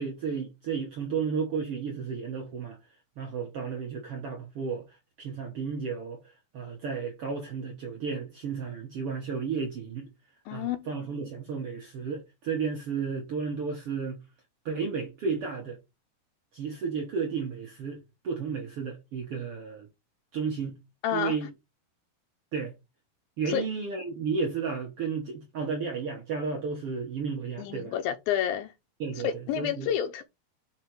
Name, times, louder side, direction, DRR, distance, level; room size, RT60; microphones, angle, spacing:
voice 1, 0.0-2.8 3.2-6.2 6.5-10.1 10.5-14.2 14.6-15.8 16.5-19.9 20.3-20.8 21.1-21.5 22.5-22.7 23.4-27.9 29.0-29.3 29.6-29.9, right 5 dB, 80° right, 1.3 m, -33 dB
voice 2, 10.5-10.9 21.0-21.4 23.5-23.7 27.6-28.7 29.2-30.2, left 10 dB, 80° left, 2.4 m, -29 dB
5.6 x 5.2 x 4.5 m
omnidirectional pair, 4.4 m